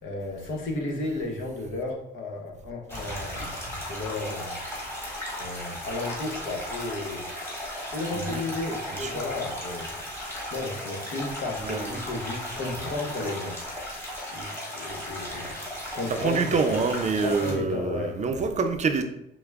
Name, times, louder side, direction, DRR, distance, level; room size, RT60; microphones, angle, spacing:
voice 1, 0.0-3.5 3.9-4.6 5.4-7.3 7.9-9.9 10.5-13.6 14.3-15.6 15.9-16.7 17.2-18.2, left 2 dB, 80° left, 1 dB, 0.9 m, -33 dB
sound 1, 2.9-17.5, left 1 dB, 10° left, 1.4 m, -36 dB
voice 2, 8.1-8.4 8.9-9.3 11.6-12.0 12.4-12.6 15.3-15.6 16.1-19.0, right 4 dB, 35° right, 7 dB, 0.4 m, -27 dB
5.8 x 2.0 x 2.3 m, 0.77 s
cardioid pair, 90°, 20 cm